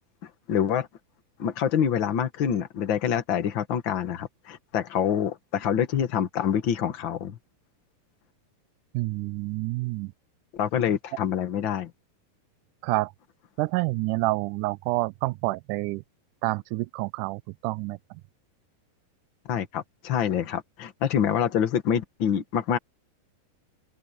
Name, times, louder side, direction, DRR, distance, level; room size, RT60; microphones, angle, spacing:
voice 1, 0.5-0.9 1.4-7.4 10.5-11.9 19.4-22.8, left 8 dB, 60° left, 1.3 m, -26 dB
voice 2, 8.9-10.1 12.8-13.1 13.6-16.0 16.4-18.0, right 21 dB, 85° right, 1.8 m, -28 dB
open air
omnidirectional pair, 4.2 m